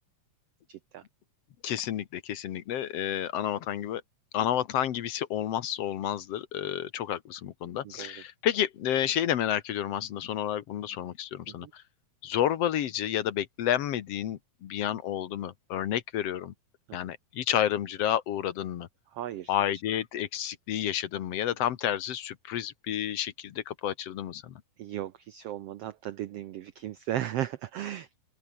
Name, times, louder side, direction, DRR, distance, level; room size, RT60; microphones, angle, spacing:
voice 1, 0.7-1.0 7.8-8.1 11.6-11.7 16.9-17.0 19.1-19.5 24.8-28.2, right 12 dB, 85° right, 1.3 m, -36 dB
voice 2, 1.6-4.0 4.3-11.8 12.2-16.5 16.9-18.9 19.5-24.5, left 11 dB, 60° left, 1.9 m, -30 dB
open air
omnidirectional pair, 3.8 m